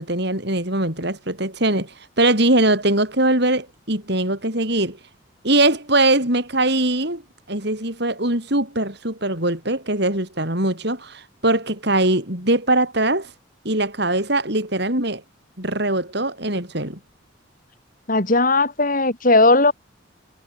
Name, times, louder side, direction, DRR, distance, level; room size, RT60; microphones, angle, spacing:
voice 1, 0.0-5.0 5.4-7.2 7.5-13.3 13.6-15.2 15.6-17.0, right 2 dB, 55° right, 7.9 m, -21 dB
voice 2, 18.1-19.7, left 2 dB, 45° left, 3.7 m, -17 dB
head